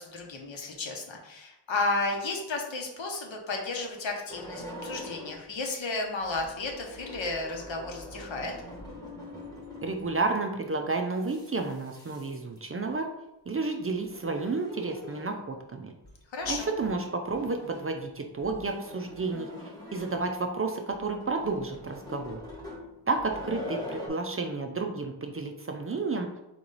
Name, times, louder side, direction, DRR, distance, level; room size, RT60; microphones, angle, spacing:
voice 1, 0.0-8.5 16.3-16.7, left 3 dB, 75° left, 1 dB, 1.0 m, -33 dB
sound 1, 4.3-5.5 6.2-10.2 11.1-12.6 13.9-15.4 16.0-16.1 16.4-17.0 17.2-17.9 18.4-20.4 20.9-24.1, left 1 dB, 10° left, 1.0 m, -44 dB
voice 2, 9.8-13.1 13.5-15.9 16.5-22.4 23.1-26.3, right 3 dB, 30° right, 4 dB, 0.4 m, -31 dB
3.9 x 3.0 x 3.9 m, 0.92 s
wide cardioid pair, 100°, 46 cm